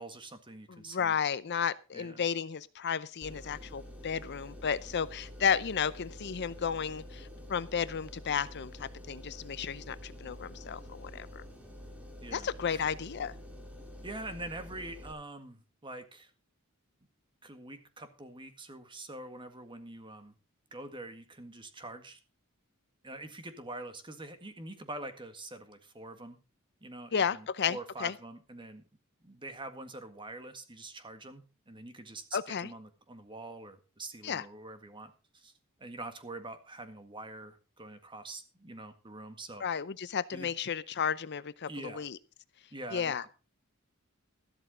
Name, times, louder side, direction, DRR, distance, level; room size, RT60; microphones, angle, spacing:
voice 1, 0.0-1.1 1.9-2.2 12.2-12.9 14.0-16.3 17.4-20.3 20.7-22.2 23.0-26.4 26.8-28.8 29.2-35.5 35.8-39.6 40.3-40.5 41.7-42.1 42.7-43.3, right 2 dB, 25° right, 1.8 m, -45 dB
voice 2, 0.9-11.4 12.3-13.3 27.1-28.1 32.3-32.7 34.2-34.4 39.6-42.2 42.9-43.2, left 7 dB, 50° left, 0.6 m, -33 dB
sound 1, 3.2-15.1, left 1 dB, 5° right, 2.8 m, -48 dB
13.5 x 12.0 x 3.7 m
head